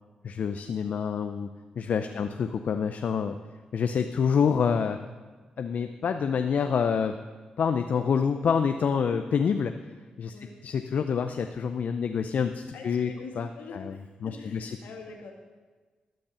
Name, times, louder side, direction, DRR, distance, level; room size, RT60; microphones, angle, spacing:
voice 1, 0.2-1.5 1.8-3.3 3.7-5.0 5.6-7.1 7.6-9.7 10.2-10.3 10.6-13.1 13.4-13.5 13.7-13.9 14.2-14.7, left 6 dB, 65° left, 7 dB, 0.5 m, -27 dB
voice 2, 8.1-8.4 9.1-9.3 10.3-10.6 12.7-15.3, left 4 dB, 80° left, 2 dB, 1.6 m, -45 dB
12.0 x 5.4 x 7.0 m, 1.4 s
cardioid pair, 55°, 3 cm